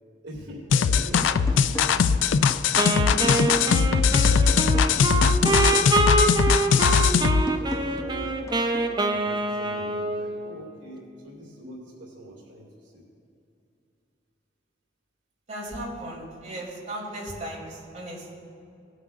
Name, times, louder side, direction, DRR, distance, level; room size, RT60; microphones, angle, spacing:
voice 1, 0.2-2.1 3.0-8.5 9.1-13.0, equal, 75° right, -4 dB, 2.3 m, -44 dB
sound 1, 0.7-7.4, left 6 dB, 85° left, 0.4 m, -20 dB
sound 2, 1.0-2.1 2.5-6.0 6.5-9.0, left 1 dB, 15° left, 0.7 m, -38 dB
Wind instrument woodwind instrument, 2.8-10.7, right 2 dB, 25° right, 0.6 m, -25 dB
voice 2, 15.5-18.4, right 1 dB, 40° right, -5 dB, 2.8 m, -37 dB
18.5 x 9.2 x 2.4 m, 2.6 s
head